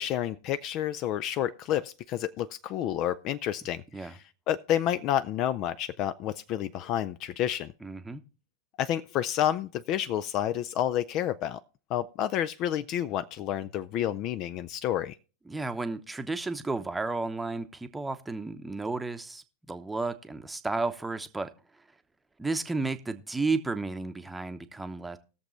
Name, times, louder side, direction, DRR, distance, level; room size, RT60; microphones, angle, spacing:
voice 1, 0.0-4.2 4.5-7.7 8.8-11.6 11.9-15.2, left 11 dB, 40° left, 14 dB, 0.4 m, -30 dB
voice 2, 7.8-8.2 15.5-21.5 22.4-25.2, right 3 dB, 10° right, 9 dB, 0.9 m, -32 dB
19.5 x 7.0 x 3.1 m, 0.35 s
figure-of-eight pair, 90°, 0 cm